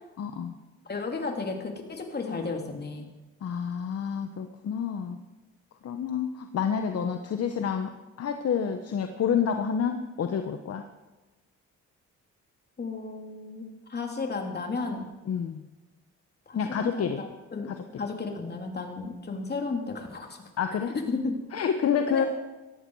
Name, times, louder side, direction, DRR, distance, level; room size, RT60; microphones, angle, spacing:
voice 1, 0.2-0.5 3.4-5.2 5.8-10.8 15.3-15.6 16.5-17.2 17.7-17.8 20.6-20.9 21.5-22.3, left 7 dB, 55° left, 7 dB, 1.1 m, -28 dB
voice 2, 0.9-3.1 12.8-13.6 13.9-15.1 16.5-17.7 18.0-20.4 21.1-21.3 22.1-22.3, left 4 dB, 35° left, 3 dB, 3.0 m, -33 dB
18.0 x 14.0 x 4.8 m, 1.1 s
cardioid pair, 90°, 30 cm